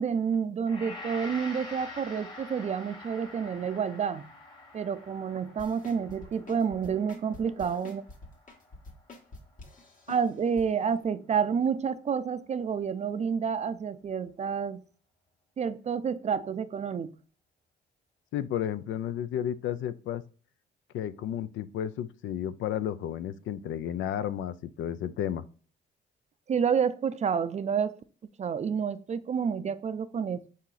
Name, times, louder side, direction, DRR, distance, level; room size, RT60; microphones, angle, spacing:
voice 1, 0.0-4.3 4.7-8.1 10.1-14.8 15.6-17.1 26.5-28.0 28.4-30.5, right 7 dB, 35° right, 0.4 m, -29 dB
Gong, 0.7-9.9, left 2 dB, 25° left, 1.5 m, -46 dB
sound 1, 5.6-10.7 11.0-11.1, left 2 dB, 40° left, 1.3 m, -47 dB
voice 2, 18.3-20.2 20.9-25.4, left 10 dB, 75° left, 0.4 m, -32 dB
4.8 x 2.8 x 3.8 m
cardioid pair, 90°, 20 cm